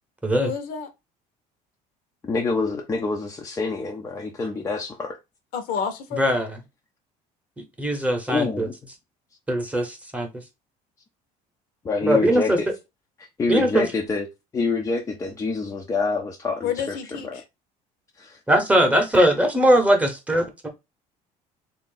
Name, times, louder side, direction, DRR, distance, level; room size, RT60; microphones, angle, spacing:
voice 1, 0.4-0.9 5.5-6.2 16.6-17.4, left 7 dB, 70° left, 0.9 m, -29 dB
voice 2, 2.2-5.2 8.3-8.8 11.8-12.7 13.4-14.3 14.5-17.4 18.2-18.4, left 4 dB, 20° left, 0.5 m, -26 dB
voice 3, 6.2-6.6 7.8-8.7 9.5-10.3 12.0-12.6 13.5-13.8 18.5-20.7, right 1 dB, 10° right, 0.9 m, -20 dB
3.5 x 2.5 x 3.8 m
cardioid pair, 140°, 16 cm